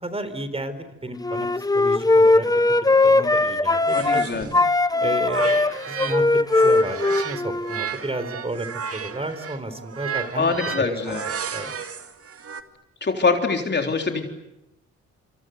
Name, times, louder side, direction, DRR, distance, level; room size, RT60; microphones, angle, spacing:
voice 1, 0.0-2.5 3.0-4.5 5.0-6.2 6.5-8.7 8.9-11.2 11.5-11.7, right 2 dB, 20° right, 11 dB, 4.1 m, -32 dB
Wind instrument woodwind instrument, 1.2-4.3 4.5-7.8, left 2 dB, 10° left, 1.0 m, -19 dB
sound 1, 3.7-6.2 6.5-12.6, right 7 dB, 50° right, 2.2 m, -33 dB
voice 2, 3.9-4.5 10.4-11.2 13.0-14.3, left 4 dB, 35° left, 3 dB, 3.7 m, -23 dB
27.0 x 26.0 x 8.0 m, 0.91 s
cardioid pair, 85°, 30 cm